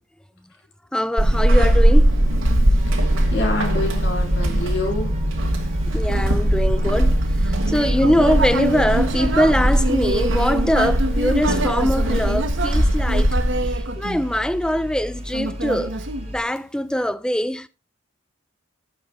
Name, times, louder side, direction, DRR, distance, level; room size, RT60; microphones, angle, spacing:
voice 1, 0.9-2.1 5.9-7.2 7.5-13.3 14.0-15.9 16.2-17.7, equal, 5° left, 0.4 m, -22 dB
Walk footsteps / Squeak, 1.2-13.8, right 1 dB, 85° right, 2.5 m, -20 dB
sound 1, 2.8-16.4, equal, 30° right, 2.5 m, -35 dB
voice 2, 3.0-5.1, left 2 dB, 55° left, 3.8 m, -27 dB
Human voice, 7.4-14.7 15.3-16.8, right 2 dB, 65° right, 1.1 m, -27 dB
14.0 x 7.6 x 3.1 m
head